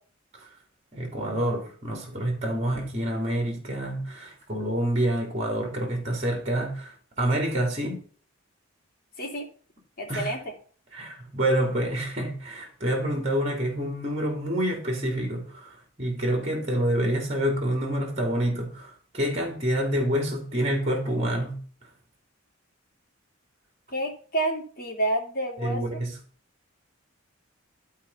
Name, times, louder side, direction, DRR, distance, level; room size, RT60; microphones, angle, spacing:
voice 1, 0.9-8.0 10.1-10.3 10.9-21.6 25.6-26.2, right 1 dB, 30° right, 3.3 m, -27 dB
voice 2, 10.0-10.5 23.9-26.0, right 1 dB, 45° left, 2.9 m, -29 dB
12.0 x 4.7 x 5.7 m
head